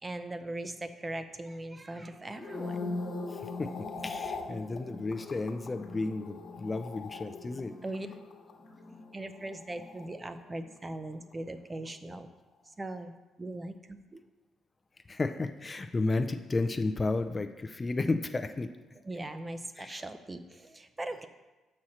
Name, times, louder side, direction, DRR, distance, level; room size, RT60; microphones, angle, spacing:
voice 1, 0.0-2.8 7.8-8.1 9.1-12.3 12.8-13.1 13.4-14.2 19.0-21.3, right 2 dB, 20° right, 9 dB, 0.5 m, -39 dB
sound 1, 2.3-10.7 10.9-11.3, left 3 dB, 60° left, 1.2 m, -41 dB
voice 2, 3.3-7.7 15.1-18.7 19.8-20.0, left 3 dB, 25° left, 8 dB, 0.4 m, -33 dB
6.2 x 4.3 x 6.2 m, 1.1 s
cardioid pair, 90°, 0 cm